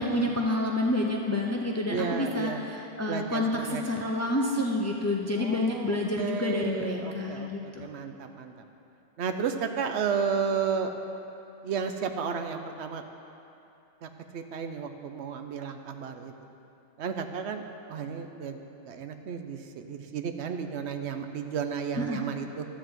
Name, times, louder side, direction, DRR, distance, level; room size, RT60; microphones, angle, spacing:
voice 1, 0.0-7.9 22.0-22.2, left 1 dB, 20° left, 0 dB, 0.4 m, -29 dB
voice 2, 1.9-2.6 3.1-3.8 5.4-8.5 9.2-10.9 11.6-13.0 14.0-16.3 17.0-17.6 17.9-18.6 18.9-22.6, right 6 dB, 75° right, 6 dB, 0.9 m, -33 dB
12.5 x 4.1 x 7.9 m, 2.8 s
omnidirectional pair, 1.2 m